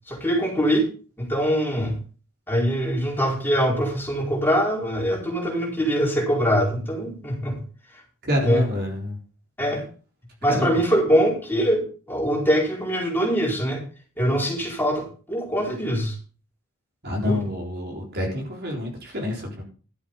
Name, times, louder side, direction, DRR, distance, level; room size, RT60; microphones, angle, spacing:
voice 1, 0.1-0.9 1.2-2.0 2.5-7.6 7.9-8.0 8.4-8.7 9.6-9.8 10.4-13.8 14.2-16.1 17.2-17.4, equal, 10° left, -3 dB, 4.9 m, -23 dB
voice 2, 8.2-9.2 10.5-10.8 17.0-19.6, left 1 dB, 50° right, 0 dB, 4.0 m, -27 dB
12.0 x 7.7 x 5.5 m, 0.38 s
head